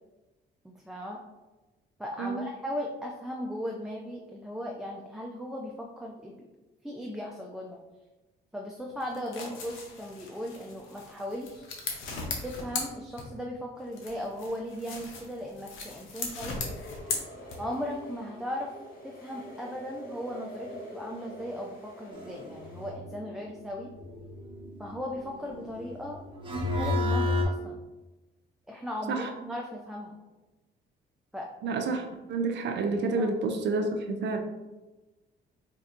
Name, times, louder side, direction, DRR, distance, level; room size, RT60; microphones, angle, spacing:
voice 1, 0.9-1.2 2.0-6.5 6.8-7.8 8.5-11.7 12.4-16.6 17.6-18.7 19.0-23.9 24.8-26.2 26.7-27.8 28.7-30.2 31.3-31.5 33.2-33.3, equal, ahead, -1 dB, 0.4 m, -37 dB
sound 1, 9.0-13.6 13.9-17.9, left 4 dB, 90° left, 0.7 m, -38 dB
sound 2, 16.5-22.9, equal, 50° left, 1.3 m, -45 dB
sound 3, 22.1-27.4, left 2 dB, 25° right, 0.8 m, -33 dB
voice 2, 31.6-34.4, right 3 dB, 60° right, 4 dB, 0.5 m, -29 dB
4.3 x 2.7 x 2.5 m, 1.1 s
cardioid pair, 90°, 20 cm